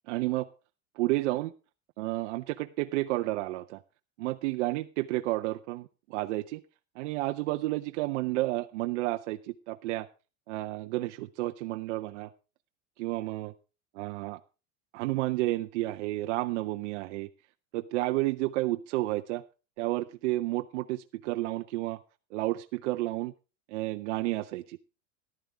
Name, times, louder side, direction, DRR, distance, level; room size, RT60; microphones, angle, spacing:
voice 1, 0.1-0.5 1.0-1.5 2.0-3.8 4.2-6.6 7.0-10.1 10.5-12.3 13.0-13.5 14.0-14.4 14.9-17.3 17.7-19.4 19.8-22.0 22.3-23.3 23.7-24.8, right 18 dB, 70° right, 7 dB, 0.7 m, -31 dB
14.0 x 11.5 x 3.4 m, 0.32 s
supercardioid pair, 150°, 36 cm